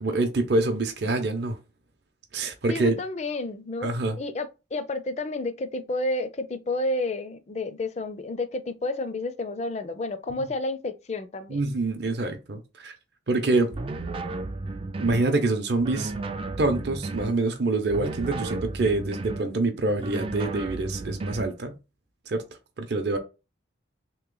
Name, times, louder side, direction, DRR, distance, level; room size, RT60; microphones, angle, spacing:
voice 1, 0.0-1.6 2.3-3.0 3.8-4.2 11.5-12.9 13.3-13.7 15.0-16.1 16.6-21.7 22.3-22.4 22.8-23.2, right 2 dB, 60° right, 0.6 m, -26 dB
voice 2, 2.7-11.6, left 2 dB, 35° left, 0.4 m, -31 dB
sound 1, 13.7-15.3 15.8-17.4 17.9-19.5 20.0-21.6, right 2 dB, 30° right, 0.3 m, -33 dB
3.2 x 3.0 x 3.7 m
head